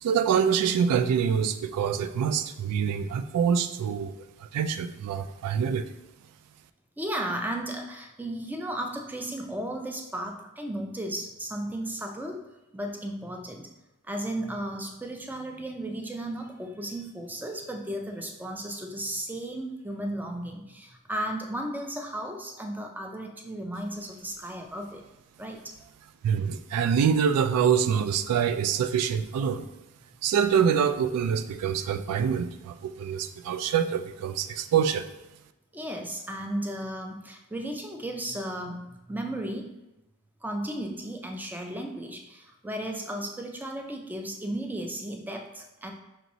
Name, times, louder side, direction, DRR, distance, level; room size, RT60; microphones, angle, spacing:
voice 1, 0.0-4.1 4.5-5.9 26.2-29.7 30.2-35.0, right 7 dB, 85° right, 12 dB, 0.3 m, -25 dB
voice 2, 7.0-12.5 12.7-13.7 14.0-25.0 25.4-25.7 35.7-39.7 40.4-45.9, right 1 dB, 10° right, 3 dB, 0.3 m, -35 dB
5.2 x 3.0 x 2.6 m, 0.95 s
head